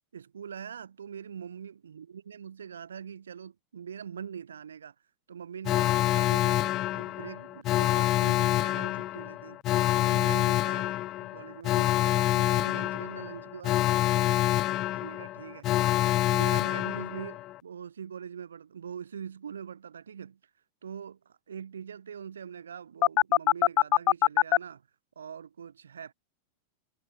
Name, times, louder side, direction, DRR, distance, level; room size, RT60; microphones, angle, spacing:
voice 1, 0.1-4.9 5.3-9.6 10.0-14.5 14.9-15.7 16.1-20.4 20.8-24.9 25.1-26.1, right 7 dB, 70° right, 3.0 m, -43 dB
Alarm, 5.6-17.6 23.0-24.6, left 16 dB, 35° left, 0.3 m, -26 dB
figure-of-eight pair, 90°, 0 cm